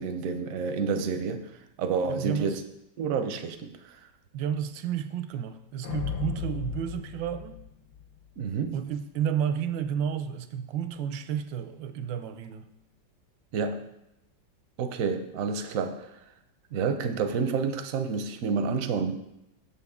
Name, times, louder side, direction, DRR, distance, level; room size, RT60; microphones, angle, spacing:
voice 1, 0.0-1.5 1.8-2.6 3.0-4.1 8.4-8.8 13.5-13.9 14.8-16.2 16.7-19.2, right 5 dB, 65° right, 8 dB, 0.9 m, -29 dB
voice 2, 2.1-2.6 4.3-7.7 8.7-12.7, right 9 dB, 85° right, 10 dB, 1.3 m, -31 dB
Deep Hit, 5.8-8.3, left 7 dB, 65° left, 1.4 m, -35 dB
7.3 x 7.0 x 3.6 m, 0.86 s
omnidirectional pair, 2.0 m